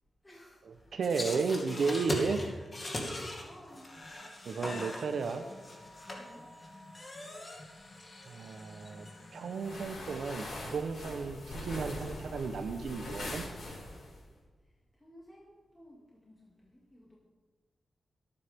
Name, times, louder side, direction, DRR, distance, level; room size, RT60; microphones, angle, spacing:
voice 1, 0.2-0.6 2.2-2.6 2.9-4.0 6.2-6.5 15.0-17.2, equal, 15° left, -5 dB, 2.4 m, -56 dB
voice 2, 0.9-2.4 4.4-5.4 8.3-13.4, right 5 dB, 75° right, 8 dB, 0.8 m, -33 dB
sound 1, 1.0-9.8, left 1 dB, 35° left, 2.5 m, -41 dB
sound 2, 9.5-14.2, left 1 dB, 70° left, 5.1 m, -42 dB
24.5 x 9.5 x 3.6 m, 1.3 s
wide cardioid pair, 160°, 0 cm